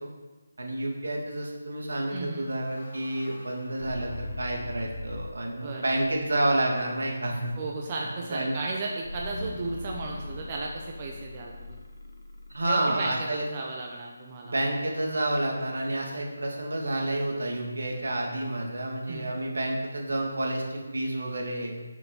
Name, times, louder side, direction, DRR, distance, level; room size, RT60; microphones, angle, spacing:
voice 1, 0.6-7.5 8.3-8.5 12.5-13.4 14.4-21.7, right 1 dB, 75° right, 0 dB, 2.4 m, -29 dB
sound 1, 2.1-5.5 5.9-6.5 9.0-13.1, left 2 dB, 70° left, 1.4 m, -41 dB
voice 2, 2.1-2.6 5.6-6.0 7.6-11.8 12.7-14.6 19.1-19.3, right 3 dB, 30° right, -1 dB, 1.0 m, -35 dB
7.4 x 6.0 x 5.7 m, 1.3 s
figure-of-eight pair, 165°, 0 cm